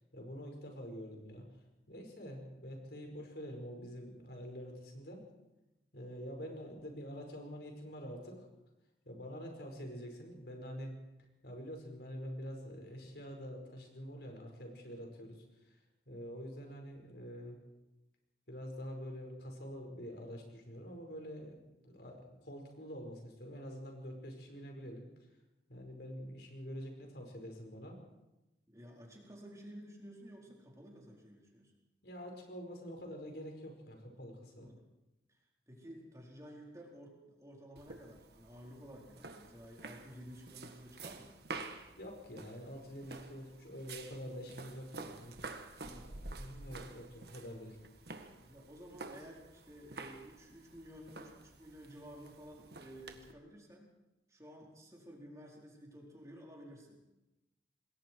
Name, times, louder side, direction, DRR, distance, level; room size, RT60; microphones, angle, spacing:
voice 1, 0.1-1.4 1.9-5.2 5.9-8.5 9.1-15.7 16.1-17.6 18.5-21.6 21.8-25.1 25.7-28.0 32.0-34.7 42.0-45.5 46.0-47.8, equal, 70° left, 2 dB, 5.2 m, -46 dB
voice 2, 28.7-31.7 34.6-34.8 35.3-35.4 35.7-41.3 45.8-46.2 48.4-53.9 54.3-57.1, equal, 20° right, -2 dB, 4.5 m, -53 dB
sound 1, 37.8-53.3, right 3 dB, 65° right, 1.8 m, -50 dB
27.0 x 21.0 x 4.7 m, 0.97 s
head